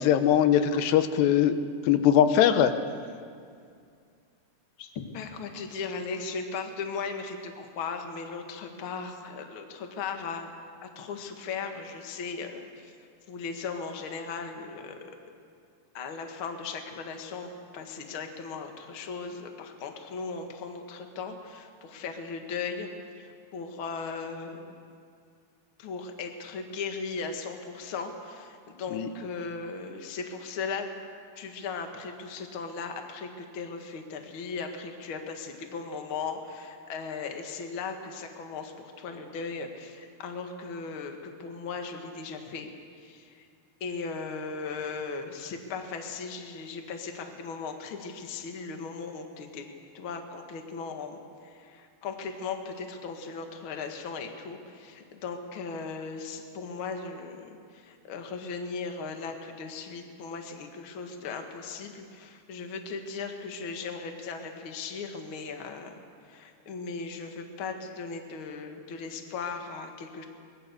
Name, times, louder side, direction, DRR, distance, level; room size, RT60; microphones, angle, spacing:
voice 1, 0.0-1.6 1.9-2.7 28.9-29.1, left 9 dB, 90° left, 9 dB, 3.1 m, -21 dB
voice 2, 5.1-10.5 10.8-12.9 13.3-15.1 15.9-22.9 23.1-24.7 25.8-30.9 31.4-43.5 43.8-49.6 49.9-70.3, left 5 dB, 45° left, 4 dB, 1.8 m, -37 dB
23.5 x 20.5 x 6.8 m, 2.3 s
omnidirectional pair, 4.7 m